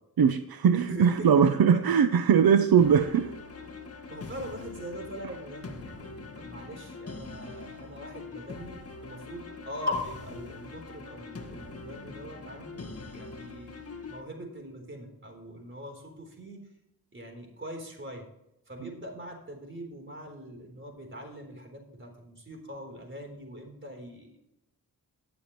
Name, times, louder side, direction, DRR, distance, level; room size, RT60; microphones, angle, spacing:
voice 1, 0.2-3.3 18.8-18.9, right 7 dB, 80° right, 9 dB, 0.7 m, -21 dB
voice 2, 0.7-1.3 1.7-1.8 4.1-8.8 9.0-13.7 14.1-16.6 17.1-18.3 18.7-24.4, equal, 35° right, 3 dB, 3.7 m, -41 dB
sound 1, 2.8-14.2, left 3 dB, 40° left, 1.6 m, -43 dB
19.5 x 7.0 x 3.1 m, 0.84 s
wide cardioid pair, 100°, 36 cm